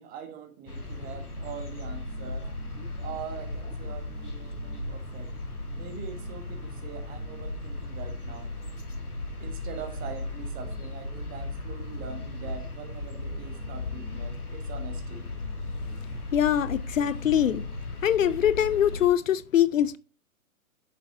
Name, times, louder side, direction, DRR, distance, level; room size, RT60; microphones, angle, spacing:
voice 1, 0.0-2.5 3.0-5.3 5.8-8.5 9.4-15.3, right 7 dB, 20° right, 1.4 m, -43 dB
sound 1, 0.7-19.1, left 2 dB, 90° left, 1.6 m, -36 dB
voice 2, 16.3-17.6 18.0-20.0, left 10 dB, 65° left, 0.6 m, -23 dB
8.9 x 7.0 x 2.7 m
figure-of-eight pair, 120°, 43 cm